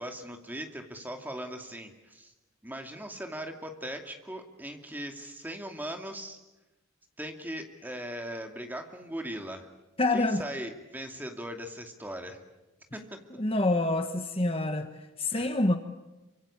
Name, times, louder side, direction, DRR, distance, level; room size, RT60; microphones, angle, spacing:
voice 1, 0.0-2.3 2.6-6.4 7.2-9.7 10.1-12.4 12.9-13.2 15.3-15.5, equal, 10° right, 4 dB, 2.5 m, -39 dB
voice 2, 10.0-10.4 13.4-14.9 15.2-15.8, left 2 dB, 30° left, 8 dB, 1.1 m, -26 dB
27.0 x 25.0 x 8.7 m, 1.1 s
head